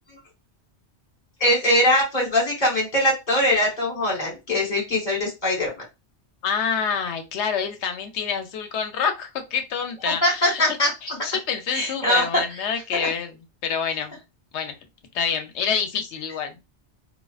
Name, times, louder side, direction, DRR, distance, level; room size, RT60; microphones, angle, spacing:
voice 1, 1.4-5.7 10.0-11.2 11.7-12.6 13.0-13.1, left 1 dB, 45° left, -3 dB, 1.4 m, -22 dB
voice 2, 6.4-10.6 11.0-13.3 13.6-14.2 14.5-14.7 15.1-16.6, left 6 dB, 85° left, 7 dB, 0.9 m, -27 dB
2.3 x 2.3 x 2.3 m, 0.24 s
omnidirectional pair, 1.1 m